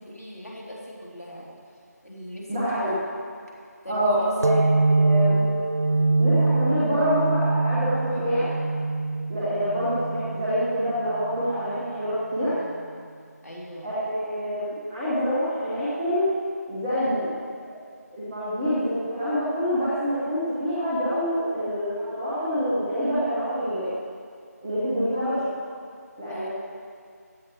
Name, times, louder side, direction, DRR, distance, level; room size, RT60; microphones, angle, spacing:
voice 1, 0.0-1.6 2.0-3.0 3.8-4.3 8.1-8.7 13.4-13.9 26.3-26.5, equal, 65° left, -4 dB, 2.9 m, -39 dB
voice 2, 2.5-2.9 3.9-5.5 6.2-8.5 9.3-12.6 13.8-16.3 16.7-17.3 18.1-23.9 24.6-25.6 26.2-26.5, equal, 10° right, -13 dB, 1.3 m, -26 dB
sound 1, 4.4-11.7, right 3 dB, 65° right, 0.4 m, -24 dB
17.0 x 11.5 x 3.1 m, 2.2 s
figure-of-eight pair, 165°, 9 cm